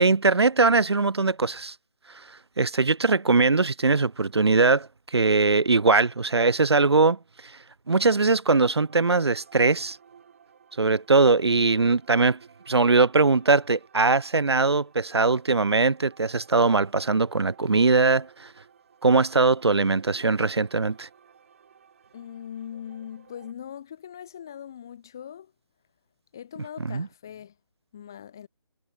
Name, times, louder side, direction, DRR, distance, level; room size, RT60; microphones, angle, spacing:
voice 1, 0.0-1.7 2.6-7.2 7.9-10.0 10.8-12.4 12.7-18.5 19.0-21.1 26.9-27.1, right 3 dB, 60° right, 0.5 m, -21 dB
sound 1, 8.8-23.5, right 7 dB, 25° right, 3.7 m, -55 dB
voice 2, 22.1-25.5 26.3-27.6 27.9-28.5, left 9 dB, 10° left, 0.5 m, -41 dB
figure-of-eight pair, 155°, 16 cm